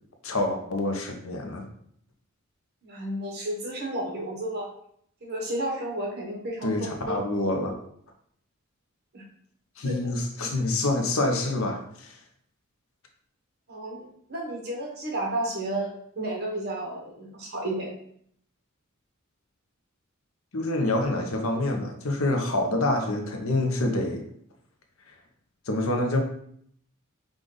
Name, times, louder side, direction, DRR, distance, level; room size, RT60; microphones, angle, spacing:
voice 1, 0.2-1.7 6.6-7.7 9.8-12.2 20.5-24.2 25.7-26.2, left 2 dB, 75° left, 3 dB, 0.8 m, -26 dB
voice 2, 2.8-4.7 5.2-7.2 9.1-9.2 9.8-10.1 10.4-10.5 13.7-17.9, right 1 dB, 50° right, -1 dB, 1.2 m, -32 dB
4.9 x 2.5 x 3.8 m, 0.67 s
head